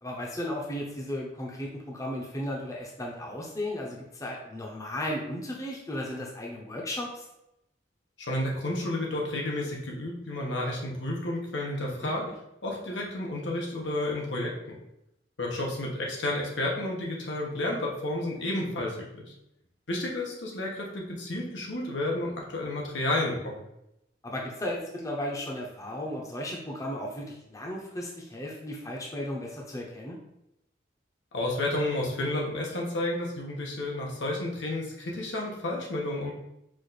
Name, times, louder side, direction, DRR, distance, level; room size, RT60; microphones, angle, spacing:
voice 1, 0.0-7.3 12.0-12.3 24.2-30.2, left 1 dB, 20° left, -2 dB, 0.7 m, -35 dB
voice 2, 8.2-12.3 12.6-14.5 15.4-19.3 19.9-23.6 31.3-36.3, left 1 dB, 90° left, -1 dB, 1.0 m, -31 dB
4.9 x 2.5 x 4.0 m, 0.84 s
head